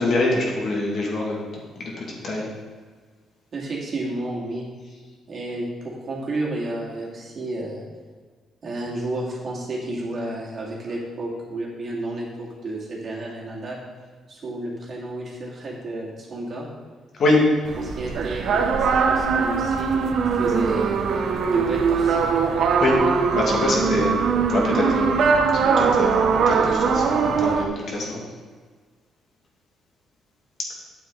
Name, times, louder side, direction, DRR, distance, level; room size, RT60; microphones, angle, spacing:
voice 1, 0.0-1.4 1.8-2.5 17.2-17.4 22.8-23.0 23.3-24.2 24.5-25.2 25.5-28.2, left 2 dB, 55° left, -2 dB, 2.2 m, -24 dB
voice 2, 3.5-4.7 5.3-7.8 8.6-13.8 14.3-16.7 17.8-20.9 21.5-22.3, right 1 dB, 50° right, -4 dB, 2.4 m, -31 dB
sound 1, 17.6-27.7, right 5 dB, 65° right, 0.7 m, -21 dB
8.7 x 7.5 x 3.9 m, 1.5 s
cardioid pair, 90°, 0 cm